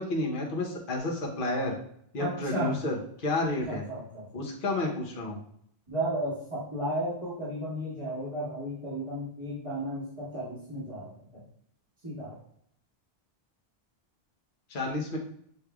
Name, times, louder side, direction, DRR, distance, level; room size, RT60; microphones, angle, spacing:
voice 1, 0.0-1.7 2.1-3.8 4.3-5.4 14.7-15.2, left 2 dB, 55° left, -2 dB, 1.1 m, -31 dB
voice 2, 2.2-2.7 3.7-4.3 5.9-11.4 12.0-12.4, right 1 dB, 30° right, -13 dB, 1.9 m, -34 dB
6.8 x 3.2 x 2.3 m, 0.68 s
omnidirectional pair, 1.0 m